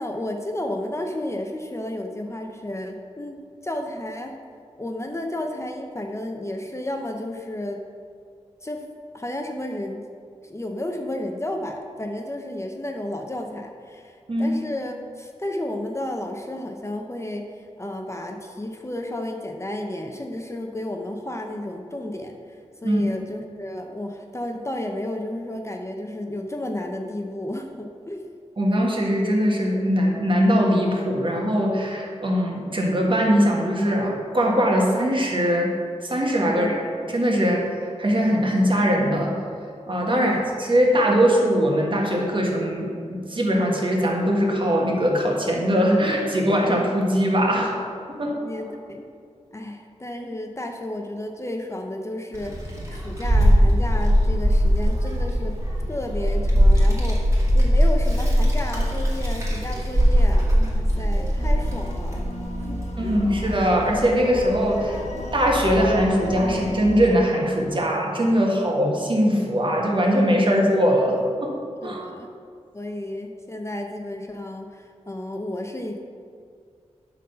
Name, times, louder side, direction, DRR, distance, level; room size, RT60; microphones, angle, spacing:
voice 1, 0.0-4.4 4.8-7.8 8.6-8.9 9.1-10.1 10.4-28.2 36.5-36.7 40.1-40.4 48.4-49.0 49.5-55.6 55.9-62.3 62.6-63.2 71.8-72.3 72.7-76.0, left 1 dB, 25° left, 3 dB, 0.6 m, -32 dB
voice 2, 28.6-35.7 36.0-36.9 37.1-39.3 39.9-47.8 48.2-48.4 63.0-65.0 65.3-71.5 71.8-72.0, equal, 45° right, -1 dB, 1.5 m, -21 dB
Child speech kid speaking, 52.3-66.8, equal, 25° right, 2.1 m, -21 dB
sound 1, 61.4-67.2, left 3 dB, 70° left, 0.8 m, -37 dB
11.5 x 3.9 x 5.5 m, 2.3 s
wide cardioid pair, 100°, 12 cm